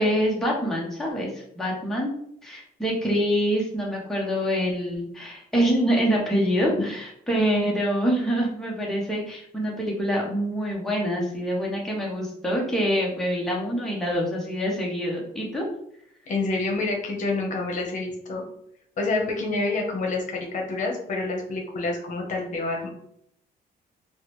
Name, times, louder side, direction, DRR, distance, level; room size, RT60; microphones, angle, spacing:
voice 1, 0.0-2.1 2.4-15.6, equal, ahead, -4 dB, 0.8 m, -25 dB
voice 2, 16.3-18.4 19.0-22.9, left 3 dB, 50° left, 1 dB, 0.9 m, -27 dB
4.5 x 2.1 x 3.0 m, 0.72 s
cardioid pair, 145°, 16 cm